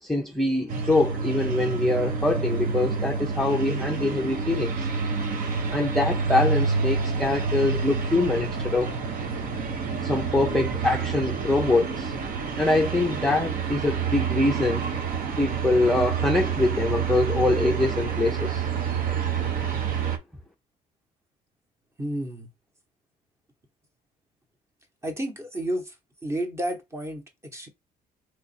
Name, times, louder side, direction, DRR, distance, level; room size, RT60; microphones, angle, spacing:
voice 1, 0.0-4.9 5.7-8.9 10.0-12.1 12.6-14.8 15.4-18.7, left 2 dB, 5° left, 0.6 m, -24 dB
sound 1, 0.7-20.2, right 5 dB, 55° right, 0.9 m, -28 dB
voice 2, 22.0-22.5 25.0-26.0 26.2-27.7, right 1 dB, 15° right, 1.0 m, -31 dB
2.9 x 2.5 x 4.1 m
cardioid pair, 110°, 17 cm